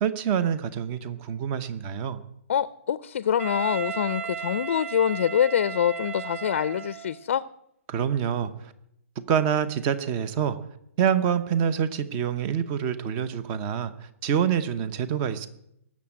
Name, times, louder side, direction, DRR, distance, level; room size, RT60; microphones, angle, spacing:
voice 1, 0.0-2.2 7.9-8.7 9.3-10.6 11.0-15.5, right 8 dB, 20° right, 0.8 m, -26 dB
voice 2, 2.5-7.4, left 9 dB, 55° left, 0.5 m, -25 dB
Wind instrument woodwind instrument, 3.4-7.2, right 9 dB, 60° right, 0.8 m, -35 dB
18.5 x 7.2 x 8.7 m
hypercardioid pair, 165°, 8 cm